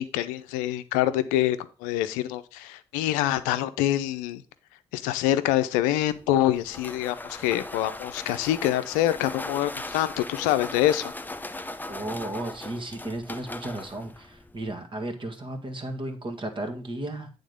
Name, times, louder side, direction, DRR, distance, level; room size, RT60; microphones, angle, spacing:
voice 1, 0.0-4.4 4.9-11.1, left 13 dB, 80° left, 13 dB, 0.6 m, -25 dB
sound 1, 6.0-14.7, left 2 dB, 15° left, 0.8 m, -39 dB
voice 2, 11.6-17.3, right 1 dB, 40° right, 4 dB, 2.0 m, -34 dB
9.1 x 3.8 x 5.0 m, 0.35 s
hypercardioid pair, 45°, 14 cm